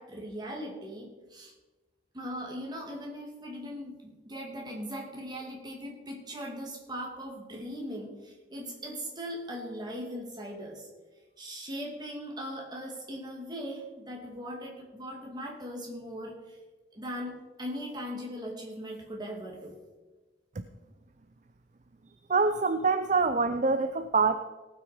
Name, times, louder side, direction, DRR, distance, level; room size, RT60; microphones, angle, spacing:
voice 1, 0.0-1.5 2.1-10.9 11.4-16.6 16.9-19.8, equal, 25° right, -1 dB, 2.4 m, -39 dB
voice 2, 22.3-24.3, right 4 dB, 40° right, 10 dB, 0.5 m, -25 dB
18.0 x 6.3 x 5.1 m, 1.2 s
head